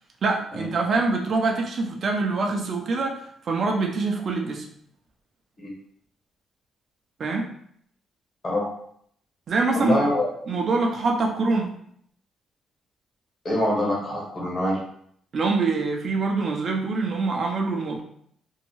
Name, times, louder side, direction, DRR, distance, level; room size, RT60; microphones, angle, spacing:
voice 1, 0.2-4.6 7.2-7.5 9.5-10.0 10.5-11.7 15.3-18.0, right 3 dB, 55° right, 2 dB, 0.5 m, -24 dB
voice 2, 9.7-10.3 13.4-14.8, left 1 dB, 40° left, -4 dB, 1.3 m, -24 dB
2.7 x 2.2 x 3.0 m, 0.65 s
cardioid pair, 90°, 0 cm